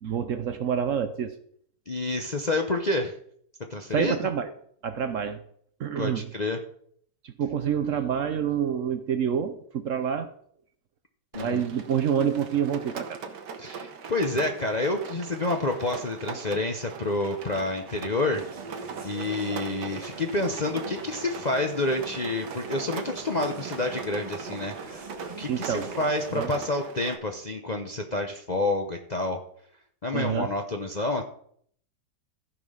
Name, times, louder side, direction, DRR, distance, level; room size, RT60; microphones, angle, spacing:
voice 1, 0.0-1.4 3.9-4.5 4.8-5.4 5.8-6.3 7.2-10.3 11.4-13.2 25.5-25.9 26.3-26.5 30.1-30.5, right 8 dB, 60° right, 10 dB, 0.9 m, -27 dB
voice 2, 1.9-3.2 3.7-4.1 6.0-6.6 11.3-11.7 13.6-18.4 19.0-25.0 25.4-29.4 30.0-31.2, left 2 dB, 40° left, 3 dB, 0.6 m, -28 dB
Rain, 11.3-27.2, right 6 dB, 90° right, 1.7 m, -40 dB
sound 1, 18.3-26.4, right 3 dB, 25° right, 1.2 m, -43 dB
14.0 x 5.4 x 5.5 m, 0.63 s
omnidirectional pair, 1.8 m